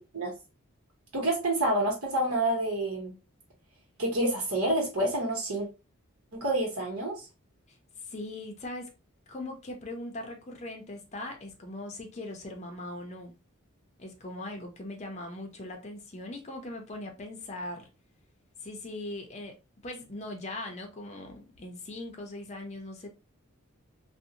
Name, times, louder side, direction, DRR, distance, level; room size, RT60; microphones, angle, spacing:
voice 1, 1.1-3.1 4.0-5.7 6.3-7.2, right 1 dB, 75° right, 0.9 m, -28 dB
voice 2, 8.1-8.9 9.3-13.4 14.0-17.9 18.6-19.5 19.8-23.1, left 1 dB, 30° left, 0.6 m, -40 dB
2.6 x 2.1 x 2.6 m
head